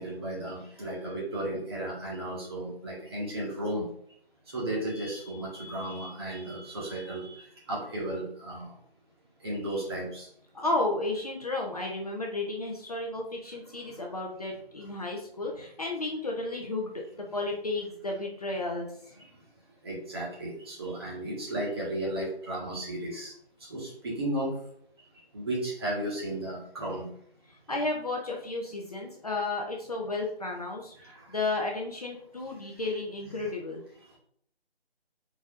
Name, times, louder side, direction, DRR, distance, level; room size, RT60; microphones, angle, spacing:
voice 1, 0.0-3.9 4.5-8.7 9.4-10.3 13.9-14.0 19.8-23.3 23.7-24.5 25.3-27.1 31.0-31.3 33.4-33.5, right 1 dB, 25° right, -5 dB, 1.5 m, -34 dB
voice 2, 10.5-16.9 17.3-18.9 27.7-30.9 31.3-33.8, left 2 dB, 40° left, -1 dB, 0.7 m, -32 dB
5.4 x 4.0 x 2.5 m, 0.65 s
figure-of-eight pair, 160°, 31 cm